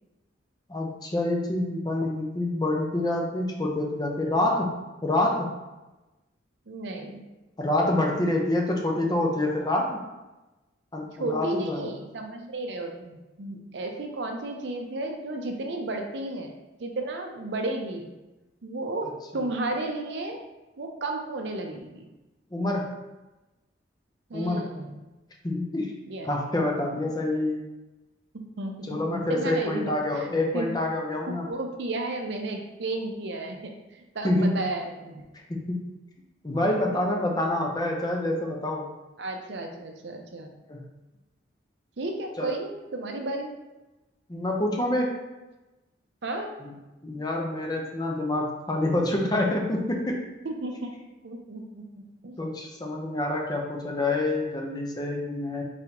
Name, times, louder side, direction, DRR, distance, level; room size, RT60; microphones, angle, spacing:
voice 1, 0.7-4.7 5.0-5.5 7.6-10.0 10.9-11.8 19.3-19.4 22.5-22.9 24.3-24.6 25.4-25.9 26.2-27.6 28.9-31.5 34.2-34.7 35.5-35.8 36.4-38.9 40.7-40.8 42.4-42.5 44.3-45.3 46.6-46.7 47.0-50.2 52.4-55.6, left 1 dB, 20° left, 0 dB, 0.6 m, -27 dB
voice 2, 6.7-7.2 11.2-16.5 16.8-18.1 18.6-20.4 20.8-22.1 24.3-25.1 26.1-26.3 28.3-30.3 30.5-30.7 31.5-35.2 39.2-40.5 42.0-43.5 46.2-46.5 50.4-52.3, right 2 dB, 65° right, 3 dB, 0.6 m, -33 dB
4.1 x 3.7 x 2.9 m, 1.1 s
head